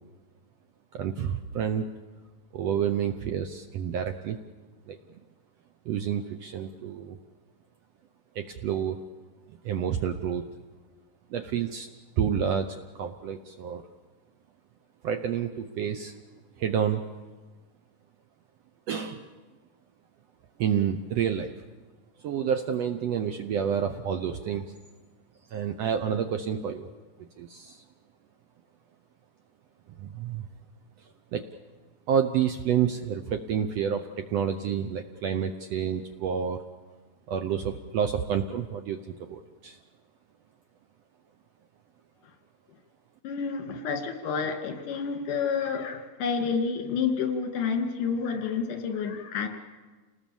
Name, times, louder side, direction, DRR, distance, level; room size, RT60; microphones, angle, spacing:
voice 1, 0.9-1.9 2.5-4.4 4.9-5.0 5.9-7.2 8.3-9.1 9.6-10.5 11.3-11.9 12.2-13.8 15.0-16.1 16.6-17.0 18.9-19.2 20.6-21.5 22.2-24.7 25.5-26.9 27.4-27.8 30.0-30.4 31.3-31.5 32.1-36.6 37.3-39.8, right 8 dB, 80° right, 7 dB, 1.4 m, -29 dB
voice 2, 43.2-49.5, left 6 dB, 70° left, 4 dB, 3.8 m, -29 dB
28.0 x 19.5 x 7.1 m, 1.3 s
omnidirectional pair, 4.0 m